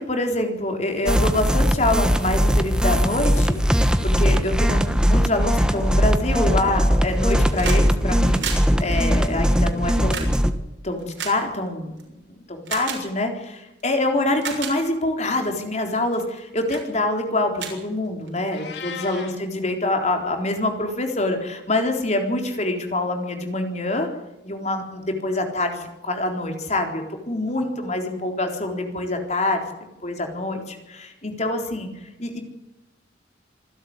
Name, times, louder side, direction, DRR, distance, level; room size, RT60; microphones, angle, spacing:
voice 1, 0.0-10.4 10.8-24.1 24.4-29.7 30.0-31.9 32.2-32.4, left 2 dB, 35° left, 4 dB, 3.9 m, -25 dB
sound 1, 1.1-10.5, equal, 5° right, 1.2 m, -20 dB
sound 2, 7.1-7.8 8.1-12.0 12.6-13.0 13.8-13.9 14.3-14.7 15.3-15.6 16.1-16.4 16.7-16.9 17.2-17.3 17.5-18.5 19.6-19.7, right 7 dB, 85° right, 6.6 m, -33 dB
Meow, 18.5-19.4, left 6 dB, 65° left, 4.1 m, -36 dB
26.0 x 12.0 x 9.7 m, 1.0 s
head